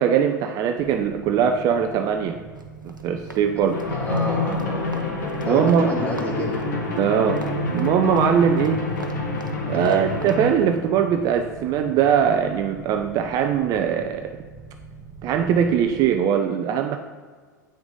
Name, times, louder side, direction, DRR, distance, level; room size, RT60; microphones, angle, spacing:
voice 1, 0.0-2.4 2.8-3.8 5.4-5.9 7.0-7.4 7.7-8.9 9.7-14.3 15.2-17.0, right 8 dB, 35° right, 6 dB, 0.6 m, -21 dB
sound 1, 0.8-16.1, right 4 dB, 10° right, 1.3 m, -42 dB
Run, 2.5-5.9 6.1-10.4, right 2 dB, 85° right, 0.8 m, -42 dB
sound 2, 3.7-10.5, left 2 dB, 65° left, 1.9 m, -27 dB
voice 2, 3.9-5.1 5.4-6.6 9.8-10.0, equal, 15° left, -2 dB, 2.5 m, -29 dB
8.7 x 6.0 x 3.8 m, 1.5 s
figure-of-eight pair, 90°, 10 cm